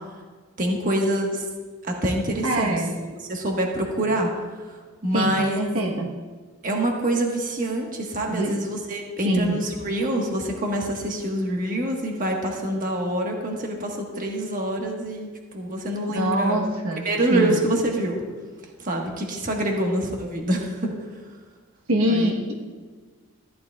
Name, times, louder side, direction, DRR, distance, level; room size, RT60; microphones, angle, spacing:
voice 1, 0.6-1.4 1.8-2.7 3.2-4.3 5.0-5.6 6.6-16.6 17.0-18.2 18.8-20.9 22.1-22.3, right 1 dB, 35° right, 0 dB, 1.3 m, -26 dB
voice 2, 2.4-2.9 5.1-6.1 8.3-8.5 9.2-9.6 16.1-17.6 21.9-22.5, right 1 dB, 70° right, 0 dB, 1.1 m, -24 dB
14.0 x 11.5 x 2.3 m, 1.4 s
head